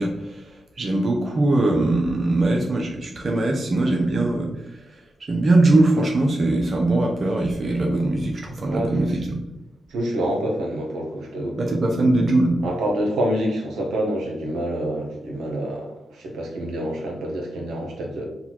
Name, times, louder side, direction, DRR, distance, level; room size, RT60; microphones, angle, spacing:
voice 1, 0.0-9.4 11.6-12.6, right 2 dB, 55° right, 1 dB, 0.7 m, -21 dB
voice 2, 8.6-9.1 9.9-11.6 12.6-15.9 16.2-18.2, right 1 dB, 85° right, 0 dB, 0.9 m, -27 dB
4.0 x 2.3 x 4.3 m, 0.92 s
supercardioid pair, 45°, 0 cm